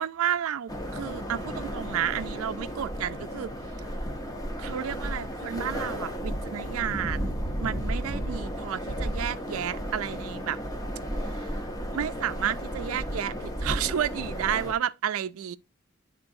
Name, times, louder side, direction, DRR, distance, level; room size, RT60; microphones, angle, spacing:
voice 1, 0.0-3.5 4.6-10.6 11.2-11.5 11.9-15.6, right 9 dB, 85° right, 0.4 m, -31 dB
sound 1, 0.7-14.7, equal, 15° left, 0.7 m, -33 dB
9.9 x 3.8 x 2.6 m
head